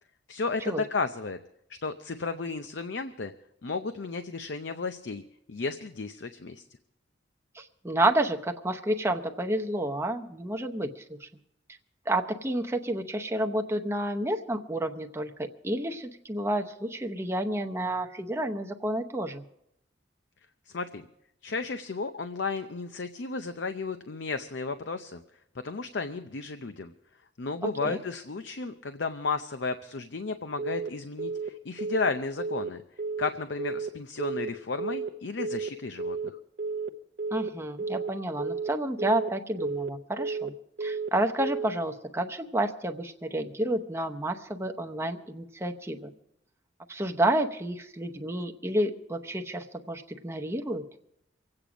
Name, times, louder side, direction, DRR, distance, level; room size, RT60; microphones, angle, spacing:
voice 1, 0.3-1.4 1.7-3.3 3.6-5.2 5.5-6.6 20.7-21.0 21.4-25.2 25.5-26.9 27.4-32.8 33.2-36.4, left 4 dB, 65° left, 9 dB, 0.6 m, -33 dB
voice 2, 7.5-11.3 12.1-19.4 27.6-28.0 37.3-40.5 40.8-46.1 46.9-50.8, right 1 dB, 15° right, 4 dB, 0.8 m, -30 dB
Telephone, 30.6-30.9 31.2-31.5 31.8-32.1 32.4-32.7 33.0-33.3 33.6-33.9 34.2-34.5 34.8-35.1 35.4-35.7 36.0-36.3 36.6-36.9 37.2-37.5 37.8-38.1 38.4-38.7 39.0-39.3 39.6-39.9 40.2-40.5 40.8-41.1 41.4-41.7, right 4 dB, 55° right, 0.7 m, -32 dB
25.0 x 8.7 x 5.0 m, 0.79 s
head